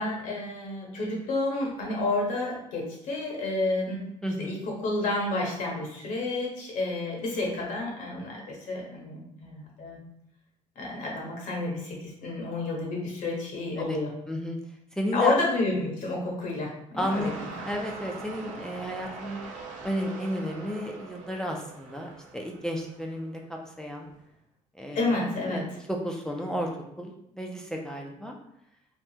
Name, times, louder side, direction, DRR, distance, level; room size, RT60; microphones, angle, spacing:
voice 1, 0.0-4.1 4.4-10.0 10.8-14.1 15.1-17.5 24.9-25.6, left 2 dB, 70° left, -2 dB, 1.1 m, -30 dB
voice 2, 4.2-4.6 13.8-14.0 14.3-14.6 14.9-15.3 17.0-19.4 19.8-24.1 24.7-25.1 25.4-26.7 27.0-28.4, equal, 5° left, 0 dB, 0.4 m, -33 dB
sound 1, 17.0-23.4 24.1-24.2, right 3 dB, 70° right, 0.8 m, -42 dB
3.4 x 2.4 x 2.8 m, 0.78 s
cardioid pair, 110°, 14 cm